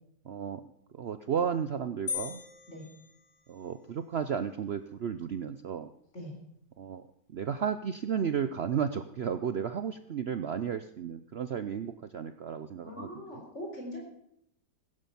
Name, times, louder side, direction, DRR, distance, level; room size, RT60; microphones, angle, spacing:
voice 1, 0.2-0.6 0.9-2.4 3.5-5.9 6.8-7.0 7.3-13.1, right 7 dB, 80° right, 10 dB, 0.5 m, -33 dB
sound 1, 2.1-3.9, left 6 dB, 85° left, 3.4 m, -39 dB
voice 2, 12.8-14.0, left 1 dB, 40° left, 0 dB, 4.5 m, -41 dB
16.5 x 9.9 x 7.0 m, 0.74 s
omnidirectional pair, 1.9 m